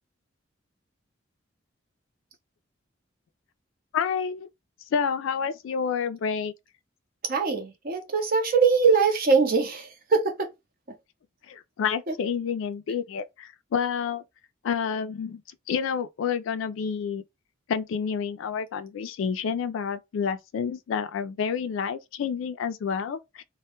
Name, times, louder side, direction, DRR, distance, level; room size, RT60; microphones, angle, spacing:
voice 1, 3.9-4.5 4.9-6.5 11.5-14.2 14.6-15.4 15.7-17.2 17.7-23.4, left 6 dB, 75° left, 0.3 m, -29 dB
voice 2, 7.3-10.5 12.1-12.2, right 5 dB, 45° right, 0.6 m, -22 dB
2.1 x 2.0 x 2.8 m
head